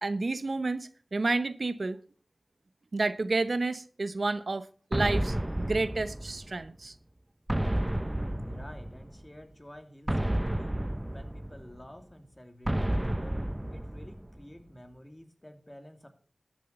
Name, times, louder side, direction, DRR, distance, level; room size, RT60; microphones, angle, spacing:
voice 1, 0.0-2.0 2.9-6.9, right 3 dB, 75° right, 0.8 m, -30 dB
sound 1, 4.9-6.7 7.5-9.2 10.1-11.9 12.7-14.4, right 1 dB, 20° right, 0.8 m, -31 dB
voice 2, 8.1-10.8 11.1-13.4 13.7-16.1, left 1 dB, 25° left, 2.7 m, -50 dB
13.5 x 7.2 x 7.0 m
wide cardioid pair, 40°, 0 cm